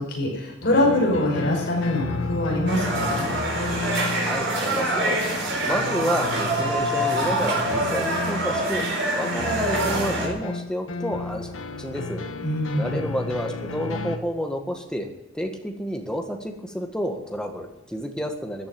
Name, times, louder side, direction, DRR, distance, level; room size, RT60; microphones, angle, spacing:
voice 1, 0.0-3.3 12.4-13.1, left 1 dB, 55° left, -1 dB, 5.6 m, -24 dB
sound 1, 0.6-14.2, left 3 dB, 90° left, 1.4 m, -33 dB
sound 2, 2.7-10.3, right 1 dB, 60° right, 4.6 m, -25 dB
voice 2, 4.2-5.2 5.6-8.8 9.2-11.5 11.8-12.2 12.7-15.1 15.3-18.7, equal, 5° left, 3 dB, 1.6 m, -30 dB
14.0 x 9.5 x 9.1 m, 1.0 s
head